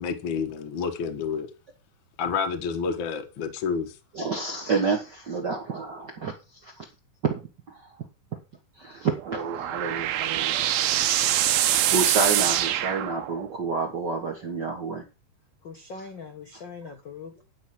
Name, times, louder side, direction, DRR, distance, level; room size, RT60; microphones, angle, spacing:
voice 1, 0.0-1.5 2.2-4.0, left 6 dB, 60° left, 1.3 m, -29 dB
voice 2, 4.1-6.8 7.2-7.4 7.7-7.9 8.8-10.6 11.9-15.0, right 4 dB, 55° right, 1.1 m, -29 dB
sound 1, 9.1-13.6, right 12 dB, 90° right, 2.7 m, -24 dB
voice 3, 15.6-17.4, left 4 dB, 80° left, 1.0 m, -41 dB
11.5 x 5.4 x 5.9 m
omnidirectional pair, 4.1 m